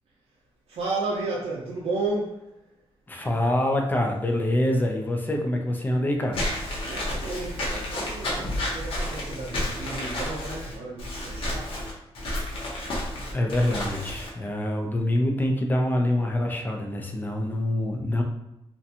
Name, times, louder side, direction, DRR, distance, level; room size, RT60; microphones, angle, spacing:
voice 1, 0.7-2.5 6.9-11.8, right 3 dB, 80° right, -5 dB, 0.5 m, -32 dB
voice 2, 3.1-6.5 13.3-18.2, left 1 dB, 20° left, 2 dB, 0.4 m, -25 dB
Walk footsteps / Squeak, 6.3-14.3, left 1 dB, 65° left, 0.8 m, -31 dB
2.5 x 2.2 x 2.7 m, 0.89 s
cardioid pair, 110°, 10 cm